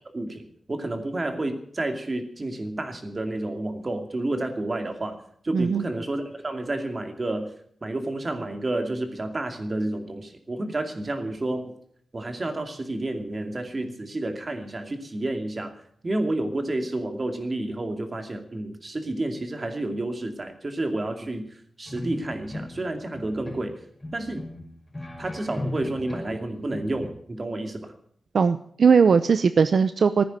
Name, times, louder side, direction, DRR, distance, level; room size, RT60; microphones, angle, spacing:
voice 1, 0.1-5.2 5.4-7.5 7.8-11.7 12.1-15.7 16.0-21.5 21.8-23.8 24.1-24.4 25.2-27.9, right 2 dB, 30° right, 6 dB, 2.5 m, -30 dB
voice 2, 5.5-5.8 28.3-30.2, right 5 dB, 65° right, 11 dB, 0.6 m, -19 dB
sound 1, 21.9-22.9 23.1-23.7 24.0-26.4 26.7-27.1, left 1 dB, 20° left, 5.4 m, -37 dB
15.5 x 9.6 x 8.9 m, 0.63 s
wide cardioid pair, 125°, 0 cm